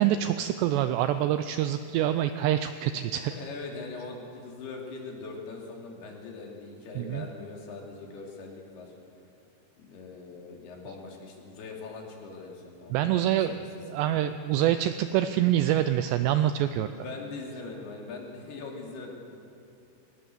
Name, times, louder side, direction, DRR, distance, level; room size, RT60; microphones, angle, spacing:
voice 1, 0.0-3.3 7.0-7.3 12.9-13.6 13.8-16.9, right 12 dB, 85° right, 10 dB, 2.5 m, -26 dB
voice 2, 3.2-8.9 9.8-13.6 16.9-19.2, left 3 dB, 60° left, 0 dB, 4.4 m, -41 dB
23.0 x 18.5 x 6.8 m, 2.6 s
omnidirectional pair, 5.5 m